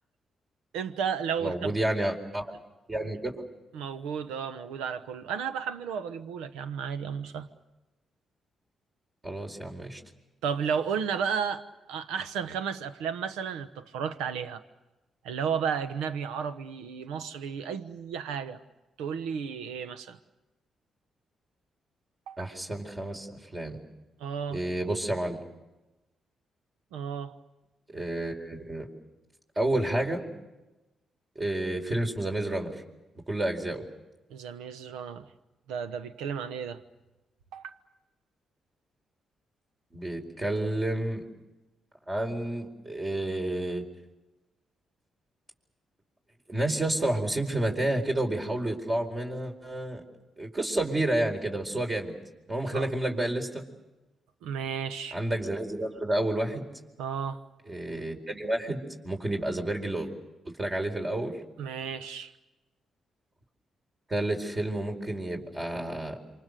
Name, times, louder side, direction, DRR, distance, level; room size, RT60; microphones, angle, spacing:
voice 1, 0.7-1.8 3.7-7.5 10.4-11.6 11.9-14.6 15.2-18.6 19.0-20.2 22.3-22.4 24.2-24.6 26.9-27.3 34.3-35.3 35.7-36.8 37.5-37.7 52.7-52.9 54.4-55.2 57.0-57.4 61.6-62.3, right 7 dB, 85° right, 13 dB, 1.1 m, -33 dB
voice 2, 1.4-2.4 2.9-3.4 9.2-10.0 22.4-23.8 24.5-25.4 27.9-28.9 29.6-30.2 31.3-32.8 33.3-33.8 39.9-41.2 42.1-43.8 46.5-50.0 50.4-52.1 52.5-53.6 55.1-56.7 57.7-60.1 60.4-61.4 64.1-66.2, right 1 dB, 30° right, 2 dB, 4.6 m, -30 dB
28.0 x 25.0 x 6.8 m, 1.1 s
hypercardioid pair, 45°, 0 cm